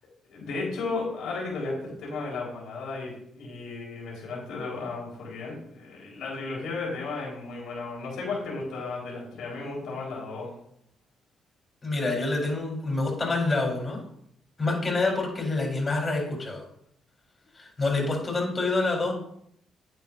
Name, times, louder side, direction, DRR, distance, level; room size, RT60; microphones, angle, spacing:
voice 1, 0.3-10.5, left 3 dB, 80° left, -3 dB, 4.1 m, -34 dB
voice 2, 11.8-14.0 14.6-16.6 17.6-19.1, left 3 dB, 30° left, 0 dB, 3.9 m, -27 dB
10.5 x 9.1 x 2.6 m, 0.71 s
cardioid pair, 90°, 0 cm